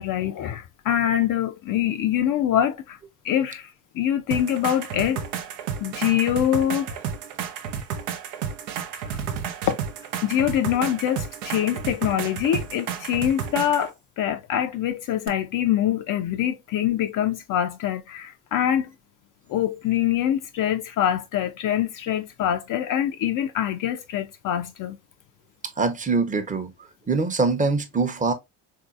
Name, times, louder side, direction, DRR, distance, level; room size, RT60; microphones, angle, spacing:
voice 1, 0.0-3.0 3.2-5.2 5.8-7.0 8.9-9.2 9.7-9.8 10.2-18.9 19.5-25.0, left 10 dB, 45° left, 0.5 m, -24 dB
sound 1, 4.3-13.9 15.3-15.4, right 7 dB, 70° right, 0.7 m, -32 dB
voice 2, 25.8-26.7 27.1-28.3, right 4 dB, 15° right, 0.7 m, -23 dB
3.7 x 2.7 x 2.4 m
hypercardioid pair, 55°, 46 cm